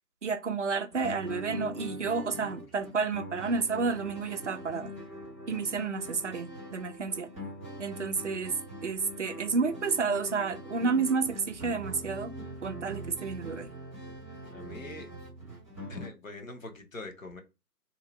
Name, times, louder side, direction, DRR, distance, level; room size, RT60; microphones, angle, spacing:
voice 1, 0.2-4.9 5.5-7.3 7.8-8.5 8.8-12.4 12.6-13.7, right 5 dB, 50° right, 0.5 m, -31 dB
sound 1, 0.9-16.1, equal, 10° left, 0.7 m, -42 dB
voice 2, 14.5-15.1 15.9-17.4, left 2 dB, 50° left, 1.0 m, -43 dB
2.8 x 2.4 x 3.9 m
figure-of-eight pair, 140°, 49 cm